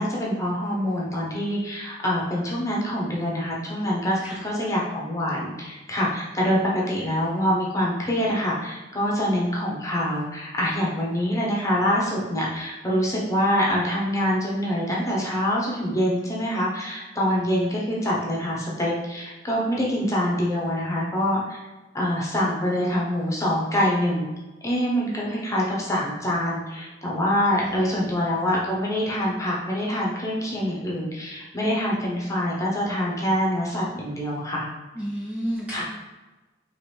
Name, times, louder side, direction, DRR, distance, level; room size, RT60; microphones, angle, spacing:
voice 1, 0.0-21.6 21.9-24.3 24.6-34.7 35.7-35.8, equal, 15° left, -4 dB, 0.9 m, -25 dB
voice 2, 27.6-28.3 35.0-35.8, equal, 5° right, -7 dB, 0.6 m, -32 dB
4.8 x 3.1 x 3.4 m, 1.2 s
head